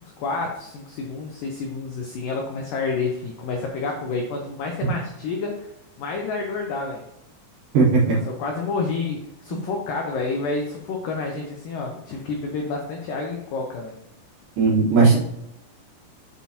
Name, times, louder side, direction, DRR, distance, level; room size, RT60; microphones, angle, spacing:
voice 1, 0.0-5.7 6.0-7.0 8.1-14.0, left 4 dB, 85° left, 1 dB, 1.9 m, -29 dB
voice 2, 7.7-8.2 14.6-15.2, right 4 dB, 65° right, -4 dB, 2.7 m, -17 dB
7.4 x 5.5 x 2.8 m, 0.80 s
omnidirectional pair, 5.0 m